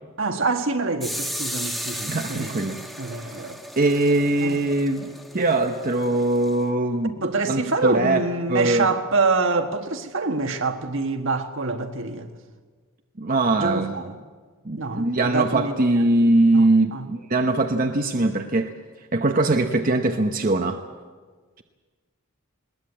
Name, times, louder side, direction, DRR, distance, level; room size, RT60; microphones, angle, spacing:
voice 1, 0.2-2.6 3.0-3.6 4.4-4.6 7.2-12.3 13.6-14.2 14.8-15.9 16.5-17.0, right 3 dB, 60° right, 1.6 m, -26 dB
sound 1, 1.0-6.6, equal, ahead, 1.3 m, -35 dB
voice 2, 2.1-2.8 3.1-3.4 3.8-8.9 13.2-14.0 14.6-18.7 19.1-20.8, right 2 dB, 40° right, 0.9 m, -22 dB
21.0 x 19.5 x 8.6 m
head